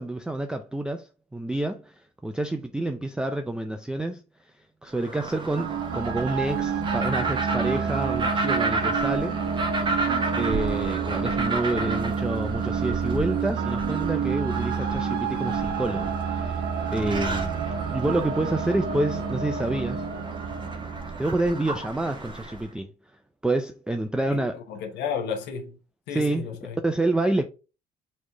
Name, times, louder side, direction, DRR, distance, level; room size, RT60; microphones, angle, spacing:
voice 1, 0.0-4.2 4.8-9.4 10.4-16.6 16.9-17.6 17.9-20.0 21.2-22.9 23.4-24.6 26.1-26.5 26.8-27.5, right 2 dB, 5° right, 0.4 m, -28 dB
sound 1, 4.9-22.7, right 3 dB, 30° right, 1.1 m, -33 dB
sound 2, 5.6-21.8, right 6 dB, 65° right, 0.7 m, -29 dB
voice 2, 24.3-25.8 26.1-26.8, left 6 dB, 85° left, 0.9 m, -32 dB
4.2 x 3.1 x 3.4 m
cardioid pair, 110°, 17 cm